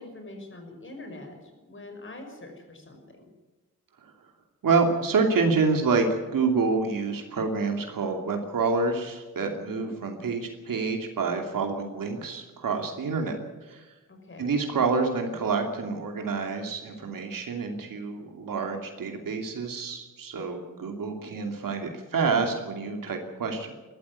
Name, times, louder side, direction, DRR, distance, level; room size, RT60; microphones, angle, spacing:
voice 1, 0.0-3.3 9.6-9.9 14.1-14.5, left 2 dB, 40° left, 4 dB, 5.8 m, -44 dB
voice 2, 4.6-13.4 13.6-13.9 14.4-23.7, right 4 dB, 85° right, 3 dB, 2.7 m, -27 dB
22.0 x 14.5 x 9.7 m, 1.2 s
wide cardioid pair, 145°, 32 cm